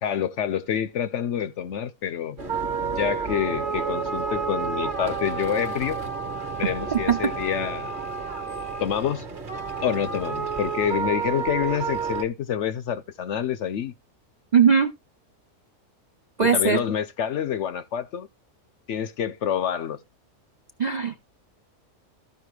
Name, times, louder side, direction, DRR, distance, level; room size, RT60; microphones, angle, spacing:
voice 1, 0.0-2.4 2.8-6.0 6.6-7.9 8.8-9.3 9.8-13.9 16.4-18.3 18.9-20.0, left 9 dB, 60° left, 0.8 m, -27 dB
sound 1, 2.4-12.2, right 5 dB, 35° right, 1.4 m, -30 dB
voice 2, 6.6-7.2 14.5-14.9 16.4-16.8 20.8-21.2, right 6 dB, 55° right, 0.5 m, -20 dB
14.0 x 5.5 x 3.2 m
omnidirectional pair, 1.5 m